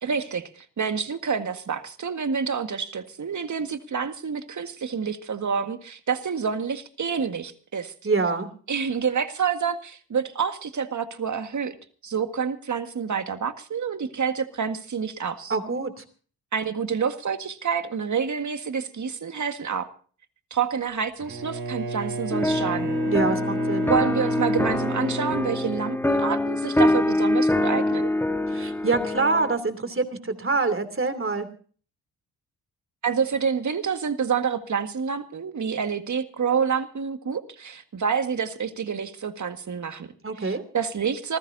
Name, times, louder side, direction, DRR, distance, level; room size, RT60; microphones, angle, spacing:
voice 1, 0.0-7.9 8.7-11.8 12.0-15.6 16.5-19.9 20.5-23.0 23.9-28.1 33.0-40.1 40.4-41.4, right 6 dB, 50° right, 8 dB, 1.8 m, -28 dB
voice 2, 8.0-8.5 15.5-15.9 23.1-23.9 28.5-31.5 40.2-40.6, right 3 dB, 35° right, 10 dB, 3.0 m, -25 dB
Bowed string instrument, 21.2-26.5, right 1 dB, 65° right, 6.4 m, -33 dB
sound 1, 22.3-29.5, left 1 dB, 5° left, 1.6 m, -24 dB
26.0 x 15.0 x 2.7 m, 0.42 s
cardioid pair, 65°, 38 cm